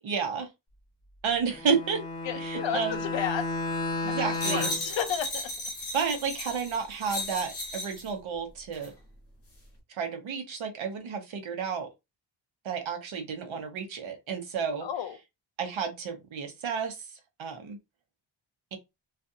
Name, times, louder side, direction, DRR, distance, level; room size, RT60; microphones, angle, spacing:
voice 1, 0.0-0.5 1.2-2.0 2.4-3.0 4.0-4.7 5.9-8.9 9.9-11.9 12.6-14.9 15.6-17.0 17.4-17.8 18.7-18.8, right 6 dB, 70° right, 0.9 m, -31 dB
Bowed string instrument, 1.5-4.9, left 2 dB, 10° left, 0.6 m, -32 dB
voice 2, 2.2-3.5 4.1-5.5 14.8-15.2, left 9 dB, 65° left, 0.6 m, -32 dB
sound 1, 4.3-8.1 8.7-8.9, left 1 dB, 30° left, 1.0 m, -35 dB
2.5 x 2.3 x 2.6 m
wide cardioid pair, 160°, 49 cm